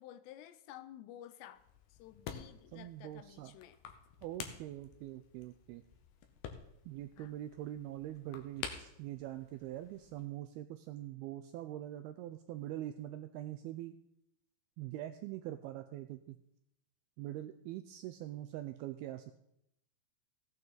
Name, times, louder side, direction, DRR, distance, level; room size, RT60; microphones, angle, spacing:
voice 1, 0.0-1.6 2.0-3.8 7.2-7.3, left 12 dB, 90° left, 13 dB, 2.9 m, -52 dB
sound 1, 1.6-10.3, left 7 dB, 70° left, 2.7 m, -50 dB
voice 2, 2.7-3.6 4.2-5.8 6.9-14.0 14.8-16.4 17.2-19.4, right 13 dB, 85° right, 8 dB, 2.2 m, -43 dB
16.5 x 9.1 x 4.0 m, 0.80 s
omnidirectional pair, 4.9 m